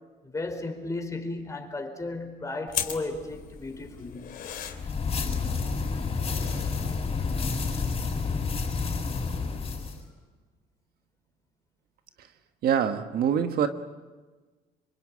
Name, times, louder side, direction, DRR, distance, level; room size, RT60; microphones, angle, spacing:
voice 1, 0.2-4.3, left 2 dB, 20° left, 4 dB, 4.5 m, -34 dB
sound 1, 2.7-8.4, left 8 dB, 60° left, 3.1 m, -39 dB
sound 2, 4.7-10.0, left 4 dB, 35° left, 7.5 m, -29 dB
voice 2, 12.6-13.7, right 8 dB, 65° right, 7 dB, 1.5 m, -25 dB
26.0 x 23.5 x 8.7 m, 1.3 s
cardioid pair, 110°, 17 cm